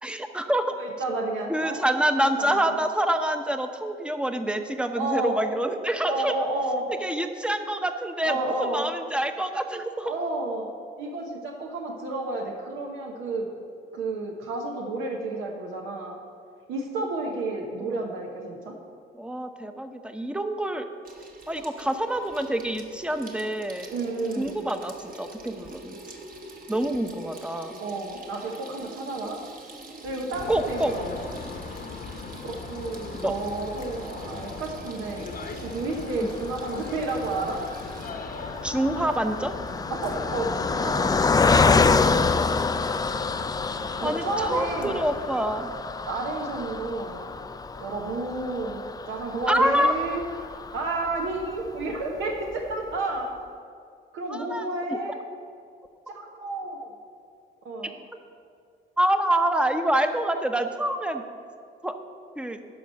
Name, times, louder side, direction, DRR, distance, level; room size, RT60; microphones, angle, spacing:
voice 1, 0.0-0.7 1.5-6.3 7.0-10.1 17.8-17.9 19.1-20.9 21.5-23.9 24.4-26.0 26.7-27.7 30.5-30.9 33.2-33.3 36.2-36.3 38.6-39.5 44.0-45.7 49.5-49.9 54.3-54.6 54.9-55.0 59.0-61.2 61.8-61.9 62.4-62.6, right 1 dB, 5° right, 7 dB, 0.7 m, -26 dB
voice 2, 0.8-2.8 4.9-5.4 6.1-6.9 8.2-8.8 10.0-10.7 11.0-13.5 13.9-16.2 16.7-18.8 23.9-24.6 27.8-29.4 30.0-31.1 32.4-37.6 39.9-42.2 44.0-45.0 46.1-47.3 47.8-50.2 50.7-53.3 54.1-55.2 56.1-56.9 57.6-58.0, right 2 dB, 90° right, 0 dB, 1.0 m, -31 dB
Water tap faucet / Sink (filling or washing), 21.0-38.1, right 2 dB, 45° right, 1.3 m, -46 dB
sound 1, 30.3-45.3, left 4 dB, 50° left, 0.9 m, -40 dB
Car passing by, 36.2-51.7 52.2-52.3 52.5-52.7, left 4 dB, 20° left, 0.3 m, -27 dB
11.5 x 4.8 x 6.3 m, 2.3 s
cardioid pair, 90°, 20 cm